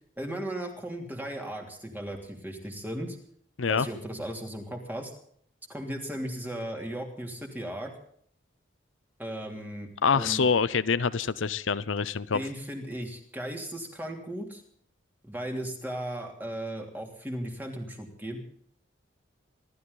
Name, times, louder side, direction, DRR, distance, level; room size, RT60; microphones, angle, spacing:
voice 1, 0.2-3.2 3.7-5.1 5.7-7.9 9.2-10.4 12.3-14.6 15.2-18.5, right 1 dB, 10° right, 2 dB, 3.0 m, -36 dB
voice 2, 10.0-12.4, left 5 dB, 90° left, 15 dB, 0.7 m, -25 dB
26.0 x 13.0 x 4.0 m, 0.62 s
head